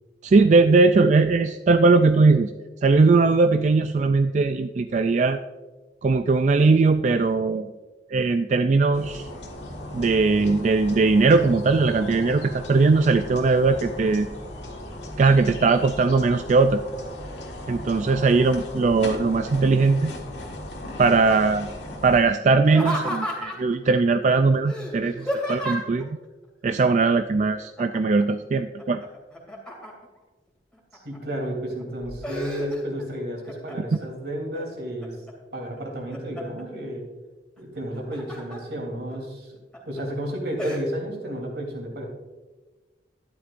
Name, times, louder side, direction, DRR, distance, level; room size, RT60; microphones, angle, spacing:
voice 1, 0.2-2.5 2.8-5.4 6.0-7.7 8.1-9.3 9.9-14.3 15.2-16.8 17.7-20.1 21.0-21.7 22.0-26.2 26.6-29.0, right 3 dB, 40° right, 8 dB, 0.3 m, -19 dB
sound 1, 8.9-22.2, left 1 dB, 85° left, 1.7 m, -37 dB
Laughter, 22.6-23.7 24.7-26.0 27.8-28.2 28.6-30.2 30.7-31.4 31.8-33.1 33.4-34.0 34.5-35.3 35.8-36.6 37.8-38.6 39.1-39.2 39.7-40.0 40.6-40.8, equal, 5° left, 2.7 m, -32 dB
voice 2, 31.0-35.2 35.5-37.0 37.6-39.5 39.8-42.1, equal, 75° right, 0 dB, 3.3 m, -32 dB
12.5 x 11.0 x 2.6 m, 1.2 s
head